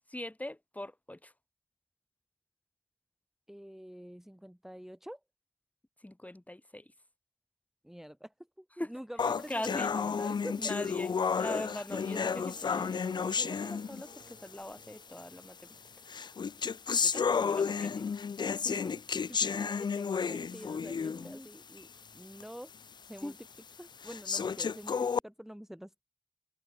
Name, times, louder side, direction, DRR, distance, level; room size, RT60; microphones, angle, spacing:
voice 1, 0.1-1.3 6.0-6.9 8.8-8.9 9.5-9.9 10.6-15.8 17.0-18.1 21.0-21.5 23.2-23.3, left 1 dB, 20° left, 8.0 m, -41 dB
voice 2, 3.5-5.2 7.8-10.7 18.4-21.9 22.1-22.7 23.1-23.4 23.8-26.0, equal, 5° right, 2.3 m, -47 dB
sound 1, 9.2-14.3 15.2-15.3 16.1-21.3 21.8-21.9 22.4-22.5 23.2-23.3 24.0-25.2, left 6 dB, 70° left, 0.4 m, -32 dB
Harp, 12.0-17.0, right 5 dB, 85° right, 6.5 m, -56 dB
cardioid pair, 45°, 8 cm